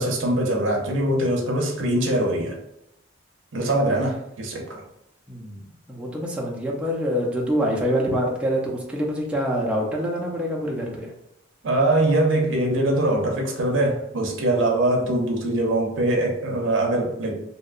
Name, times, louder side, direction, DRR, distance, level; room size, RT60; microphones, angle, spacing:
voice 1, 0.0-2.6 3.5-4.8 11.6-17.4, right 1 dB, 80° right, 1 dB, 0.6 m, -22 dB
voice 2, 5.3-11.1, equal, 5° right, -3 dB, 0.4 m, -26 dB
2.7 x 2.1 x 2.4 m, 0.82 s
head